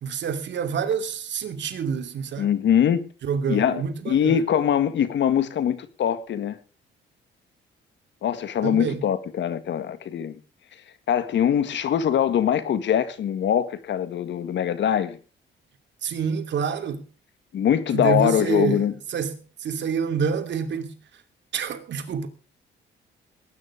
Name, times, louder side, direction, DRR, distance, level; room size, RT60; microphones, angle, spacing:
voice 1, 0.0-2.5 3.2-4.4 8.6-9.0 16.0-17.0 17.9-20.9 21.5-22.3, right 6 dB, 65° right, 2.9 m, -27 dB
voice 2, 2.4-3.0 3.5-6.6 8.2-10.4 11.1-15.2 17.5-18.9, left 9 dB, 65° left, 1.8 m, -23 dB
18.5 x 9.9 x 5.0 m
cardioid pair, 90°, 20 cm